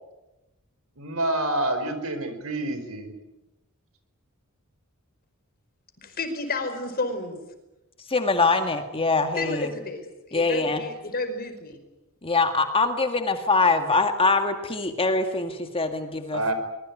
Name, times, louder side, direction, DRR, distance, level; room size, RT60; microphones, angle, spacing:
voice 1, 1.0-3.1 16.3-16.5, right 1 dB, 70° right, 10 dB, 4.6 m, -27 dB
voice 2, 6.0-7.4 9.4-10.0 10.3-11.8, left 2 dB, 45° left, 7 dB, 5.0 m, -31 dB
voice 3, 8.1-9.7 10.3-10.8 12.2-16.5, left 3 dB, 25° left, 6 dB, 1.9 m, -23 dB
24.0 x 21.5 x 9.6 m, 0.99 s
head